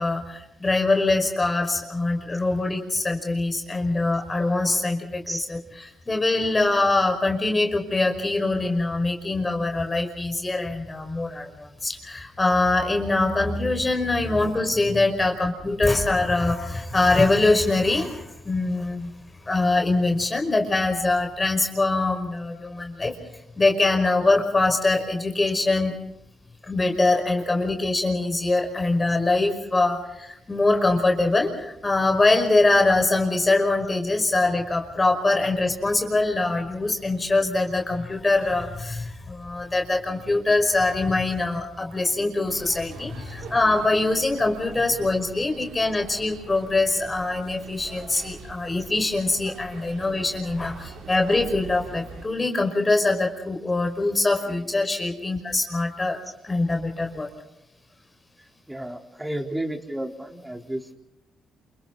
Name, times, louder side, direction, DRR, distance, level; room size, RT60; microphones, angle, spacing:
voice 1, 0.0-5.6 6.1-19.1 19.5-23.2 23.6-25.9 26.6-57.3, left 2 dB, 20° left, 4 dB, 5.3 m, -23 dB
sound 1, 42.4-52.3, right 5 dB, 75° right, 5.8 m, -43 dB
voice 2, 58.7-60.9, right 1 dB, 10° right, 4 dB, 4.0 m, -32 dB
29.0 x 28.5 x 4.1 m, 0.86 s
cardioid pair, 90°, 0 cm